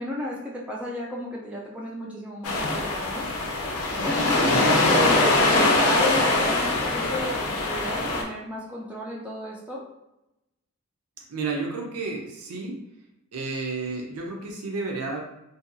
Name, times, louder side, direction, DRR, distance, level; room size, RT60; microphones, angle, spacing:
voice 1, 0.0-3.3 4.0-9.9, left 1 dB, 5° right, -4 dB, 0.3 m, -33 dB
sound 1, 2.4-8.2, left 2 dB, 70° left, 0.5 m, -22 dB
voice 2, 4.4-5.0 11.3-12.8 13.3-15.2, right 3 dB, 75° right, 0 dB, 0.6 m, -31 dB
2.7 x 2.3 x 2.5 m, 0.88 s
head